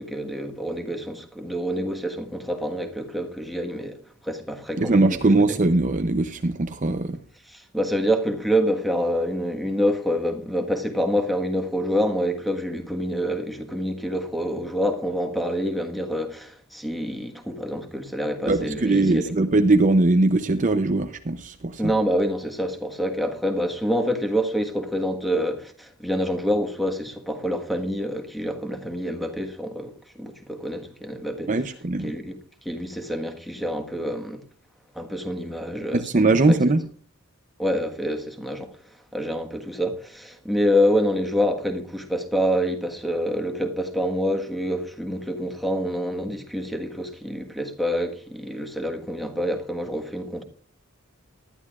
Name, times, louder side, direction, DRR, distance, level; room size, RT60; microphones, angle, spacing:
voice 1, 0.0-5.5 7.5-19.3 21.8-31.5 32.0-32.4 32.6-34.4 34.9-36.1 36.5-36.6 37.6-38.8 39.1-50.4, equal, ahead, 1.4 m, -27 dB
voice 2, 4.8-7.2 18.5-21.9 31.5-32.1 35.9-36.8, right 2 dB, 35° right, 0.6 m, -20 dB
19.5 x 11.5 x 2.4 m
head